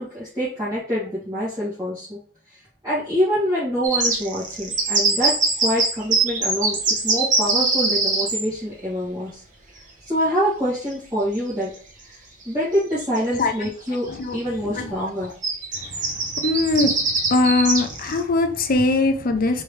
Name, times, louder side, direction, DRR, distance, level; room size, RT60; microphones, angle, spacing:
voice 1, 0.0-2.2 2.8-9.4 10.1-11.7 12.1-12.2 12.4-14.1 14.3-15.3, equal, 20° right, -12 dB, 2.1 m, -25 dB
sound 1, 3.8-8.5 10.9-11.0 11.4-11.5 12.7-12.8 13.1-13.7 14.1-14.3 15.4-18.2, right 3 dB, 40° right, 1.0 m, -22 dB
voice 2, 16.4-17.0 17.3-19.6, left 2 dB, 40° left, 6 dB, 0.5 m, -21 dB
4.4 x 3.3 x 3.1 m, 0.43 s
head